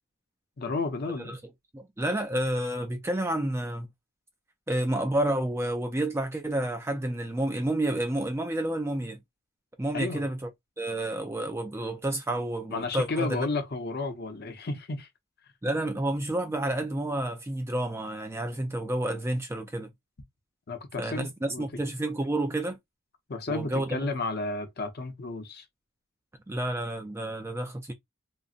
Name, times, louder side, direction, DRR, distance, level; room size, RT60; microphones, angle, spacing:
voice 1, 0.6-1.4 9.9-10.3 12.7-15.1 20.7-21.7 23.3-25.6, left 3 dB, 45° left, 0.7 m, -32 dB
voice 2, 1.7-3.9 4.7-9.2 9.8-10.5 10.8-13.5 15.6-19.9 21.0-22.8 23.5-24.0 26.5-27.9, right 1 dB, 10° right, 0.3 m, -30 dB
3.8 x 2.0 x 2.4 m
head